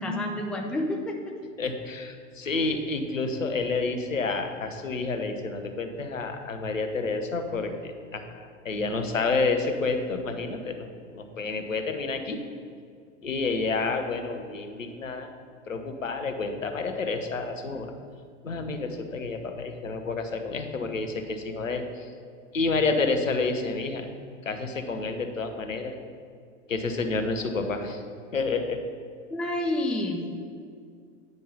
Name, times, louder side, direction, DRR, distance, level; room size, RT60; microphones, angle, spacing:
voice 1, 0.0-1.4 29.3-30.2, left 1 dB, ahead, 3 dB, 0.4 m, -29 dB
voice 2, 1.6-12.4 13.2-15.3 15.7-17.9 18.4-22.1 22.5-24.1 24.4-25.9 26.7-28.0 28.3-28.8, left 3 dB, 75° left, 6 dB, 1.0 m, -29 dB
9.5 x 5.4 x 5.5 m, 2.2 s
figure-of-eight pair, 90°, 39 cm